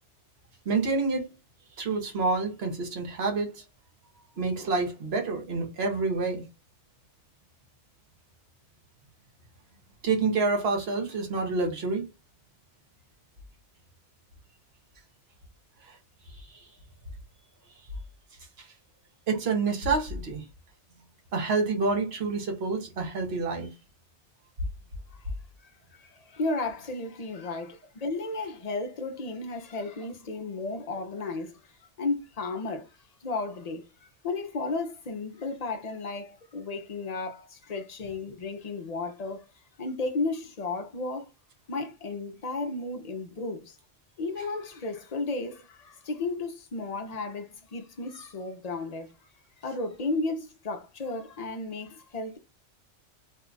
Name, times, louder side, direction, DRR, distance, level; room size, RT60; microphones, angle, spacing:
voice 1, 0.6-1.3 1.8-3.6 4.4-6.4 10.0-12.1 15.9-16.0 16.4-16.6 18.6-18.7 19.3-20.4 21.3-23.7, right 3 dB, 60° right, 1.1 m, -28 dB
voice 2, 25.6-31.6 32.0-32.9 33.2-39.4 39.8-41.3 41.7-43.8 44.2-49.1 49.6-52.4, left 3 dB, 45° left, 0.6 m, -34 dB
2.6 x 2.2 x 3.7 m
omnidirectional pair, 1.2 m